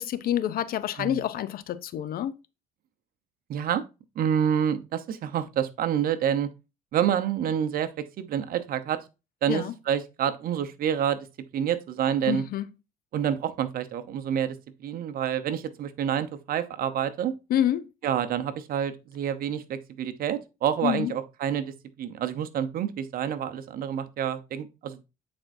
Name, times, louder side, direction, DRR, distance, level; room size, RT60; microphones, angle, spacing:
voice 1, 0.0-2.3 9.5-9.7 12.3-12.7 17.5-17.9 20.8-21.1, left 11 dB, 60° left, 0.6 m, -27 dB
voice 2, 3.5-3.8 4.2-6.5 6.9-9.0 9.4-11.3 11.5-12.4 13.1-17.3 18.0-25.0, right 9 dB, 60° right, 0.8 m, -28 dB
8.8 x 4.3 x 2.6 m
cardioid pair, 110°, 17 cm